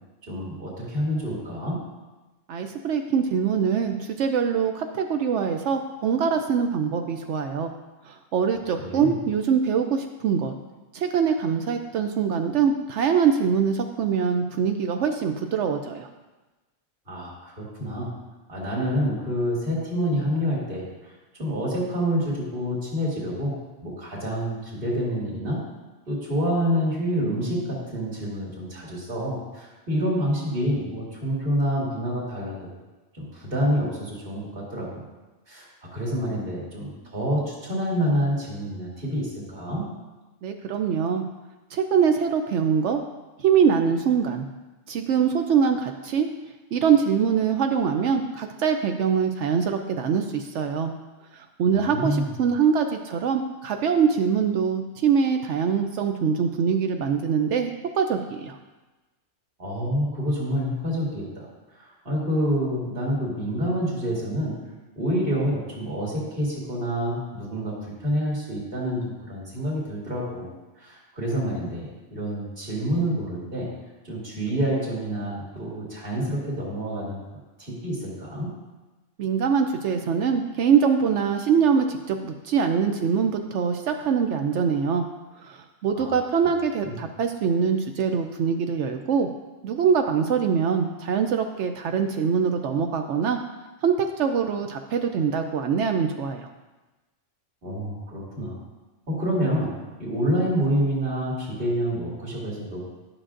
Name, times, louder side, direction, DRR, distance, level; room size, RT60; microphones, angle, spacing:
voice 1, 0.3-1.8 8.8-9.2 17.1-18.1 18.5-21.1 21.4-23.6 23.8-25.6 26.1-32.7 33.1-35.0 35.5-39.9 51.7-52.3 59.6-61.5 61.7-64.6 64.9-67.7 68.0-70.5 70.8-73.7 74.1-77.2 77.6-78.5 85.9-86.2 86.8-86.9 97.6-98.6 99.1-99.7 100.0-102.8, equal, 50° right, -5 dB, 2.3 m, -27 dB
voice 2, 2.5-7.7 8.1-10.5 10.9-16.1 40.4-41.2 41.7-43.0 43.4-44.5 44.9-46.3 46.7-50.9 51.6-58.6 79.2-85.0 85.4-89.3 89.6-93.4 93.8-96.5, right 6 dB, 70° right, 5 dB, 0.8 m, -23 dB
12.0 x 6.3 x 2.5 m, 1.1 s
omnidirectional pair, 1.3 m